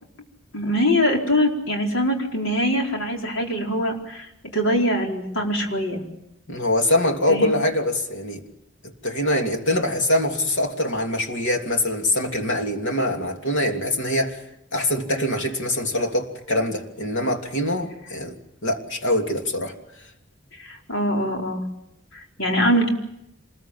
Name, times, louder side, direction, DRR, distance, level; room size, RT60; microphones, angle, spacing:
voice 1, 0.5-4.3 4.5-6.0 7.3-7.5 20.6-21.6 22.1-22.9, equal, 85° left, 4.7 m, -23 dB
voice 2, 6.5-8.4 8.8-14.4 14.7-18.3 18.6-19.8, left 1 dB, 70° left, 3.1 m, -24 dB
27.0 x 21.0 x 7.6 m
head